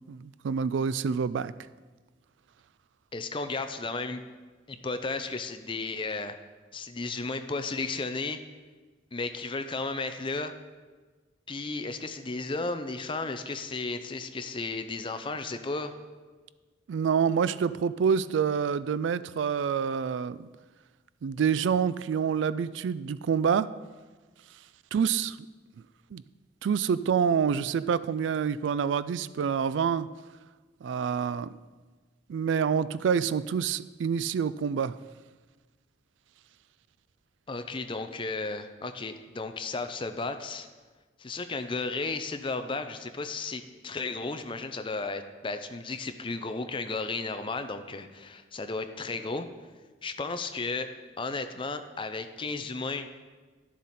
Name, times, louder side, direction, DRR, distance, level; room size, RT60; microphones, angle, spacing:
voice 1, 0.1-1.5 16.9-20.5 21.2-23.7 24.9-25.4 26.1-26.2 26.6-30.1 30.8-31.5 32.3-35.0, right 7 dB, 85° right, 16 dB, 0.3 m, -27 dB
voice 2, 3.1-4.2 4.7-6.4 6.7-8.4 9.1-10.5 11.5-15.9 37.5-40.7 41.2-49.5 50.0-50.9 51.2-53.1, left 3 dB, 30° left, 9 dB, 0.5 m, -34 dB
11.5 x 7.4 x 4.2 m, 1.3 s
head